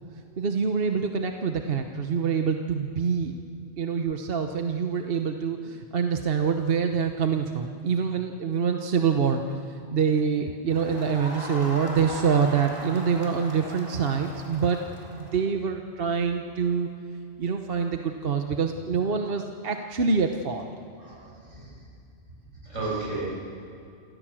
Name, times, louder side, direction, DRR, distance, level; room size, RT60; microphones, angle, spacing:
voice 1, 0.4-3.3 3.8-14.8 15.2-16.9 17.4-20.7, right 6 dB, 50° right, 5 dB, 1.1 m, -26 dB
Crowd, 10.7-15.5, equal, 25° right, 3.3 m, -39 dB
voice 2, 21.0-21.7 22.6-23.3, right 3 dB, 75° right, -5 dB, 7.5 m, -33 dB
27.5 x 15.0 x 7.5 m, 2.5 s
omnidirectional pair, 1.3 m